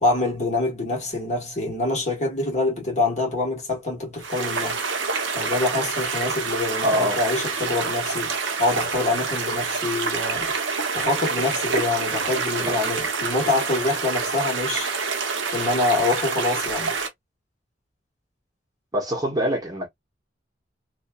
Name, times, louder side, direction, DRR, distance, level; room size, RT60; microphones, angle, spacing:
voice 1, 0.0-4.8 5.3-8.3 8.6-10.5 10.9-14.9 15.5-16.9, left 2 dB, 40° left, 1.3 m, -25 dB
sound 1, 4.2-17.1, right 5 dB, 85° right, 0.7 m, -27 dB
voice 2, 6.8-7.2 12.6-12.8 18.9-19.9, equal, 20° right, 0.8 m, -24 dB
2.7 x 2.2 x 2.2 m
head